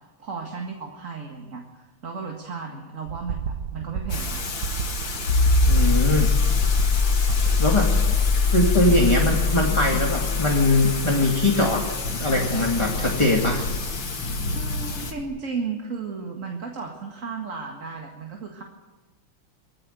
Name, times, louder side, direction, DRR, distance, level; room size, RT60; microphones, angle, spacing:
voice 1, 0.2-4.4 6.0-6.4 14.5-18.6, right 5 dB, 40° right, 1 dB, 2.1 m, -34 dB
sound 1, 3.1-8.4, right 7 dB, 60° right, 1.4 m, -31 dB
Thunder / Rain, 4.1-15.1, left 3 dB, 65° left, 2.8 m, -31 dB
sound 2, 5.3-13.7 15.2-15.3, left 4 dB, 80° left, 3.9 m, -22 dB
voice 2, 5.7-6.3 7.6-7.9 8.5-11.9 12.1-13.6, left 1 dB, 15° left, 0 dB, 1.9 m, -21 dB
22.0 x 15.5 x 9.2 m, 1.2 s
omnidirectional pair, 2.3 m